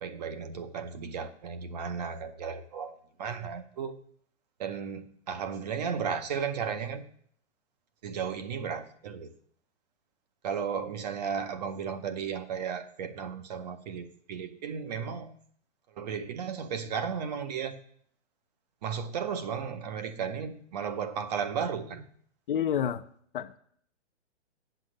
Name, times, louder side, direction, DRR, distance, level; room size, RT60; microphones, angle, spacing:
voice 1, 0.0-2.9 3.2-4.0 4.6-7.0 8.0-9.3 10.4-15.4 16.0-17.8 18.8-22.1, right 6 dB, 35° right, 9 dB, 0.8 m, -34 dB
voice 2, 22.5-23.0 23.3-23.6, left 9 dB, 50° left, 11 dB, 0.5 m, -29 dB
8.0 x 7.0 x 6.3 m, 0.63 s
hypercardioid pair, 155°, 35 cm